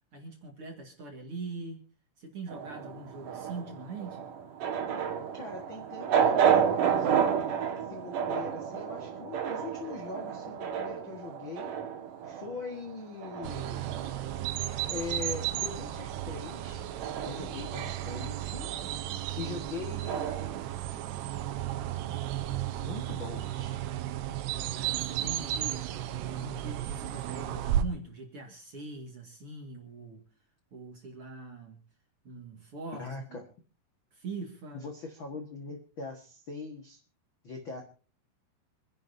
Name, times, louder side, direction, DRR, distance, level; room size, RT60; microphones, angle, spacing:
voice 1, 0.1-1.8 2.2-4.3 17.3-17.5 17.8-17.9 24.5-25.9 26.2-30.2 30.7-31.8 32.2-33.4 34.1-34.9, right 3 dB, 40° right, 2 dB, 2.3 m, -42 dB
sound 1, 2.5-15.1 15.4-20.7, right 8 dB, 60° right, 2.9 m, -32 dB
voice 2, 5.3-7.4 7.9-11.7 12.2-13.9 14.9-16.8 17.2-18.7 19.4-20.3 22.7-23.8 33.0-33.4 34.7-37.0 37.4-37.8, left 4 dB, 50° left, 2 dB, 1.5 m, -41 dB
sound 2, 13.4-27.8, right 12 dB, 85° right, 3.0 m, -34 dB
27.5 x 11.0 x 2.7 m, 0.37 s
omnidirectional pair, 4.7 m